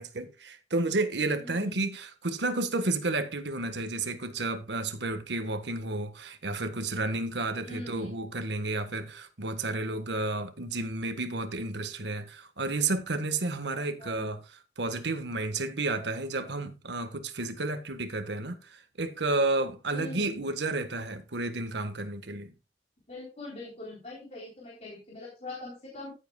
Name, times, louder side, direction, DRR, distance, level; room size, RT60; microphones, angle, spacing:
voice 1, 0.0-14.4 14.8-22.5, right 2 dB, 80° right, 1.5 m, -31 dB
voice 2, 1.4-1.8 7.7-8.1 14.0-14.4 19.9-20.5 23.1-26.1, left 2 dB, 40° left, 3.6 m, -42 dB
15.0 x 8.1 x 2.3 m
head